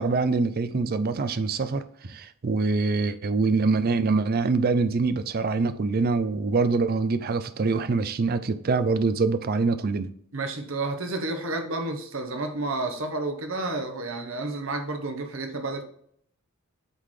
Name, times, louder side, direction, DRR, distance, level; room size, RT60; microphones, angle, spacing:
voice 1, 0.0-10.1, right 4 dB, 45° right, 0.4 m, -24 dB
voice 2, 10.3-15.8, right 2 dB, 65° right, 1.0 m, -30 dB
8.1 x 3.9 x 3.2 m
head